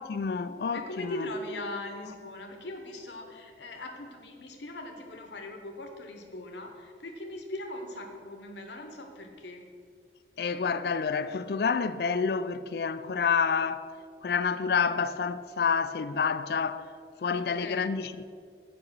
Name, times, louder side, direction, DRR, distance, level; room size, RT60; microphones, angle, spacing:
voice 1, 0.0-1.3 10.4-13.9 14.2-16.9 17.2-18.2, left 5 dB, 65° left, 0.4 m, -28 dB
voice 2, 0.7-9.6 17.3-17.8, left 1 dB, 85° left, 1.0 m, -40 dB
8.5 x 5.2 x 6.7 m
head